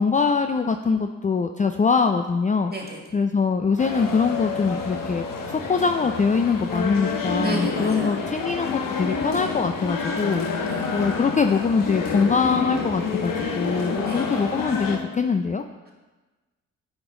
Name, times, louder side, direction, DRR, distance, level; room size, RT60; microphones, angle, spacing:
voice 1, 0.0-2.7 3.1-15.6, left 5 dB, 20° left, 6 dB, 0.4 m, -23 dB
sound 1, 3.8-15.0, left 5 dB, 65° left, 1.0 m, -28 dB
voice 2, 7.4-8.2 10.6-10.8 13.9-14.2, right 1 dB, 25° right, 0 dB, 2.1 m, -31 dB
9.4 x 5.1 x 3.7 m, 1.2 s
hypercardioid pair, 45°, 36 cm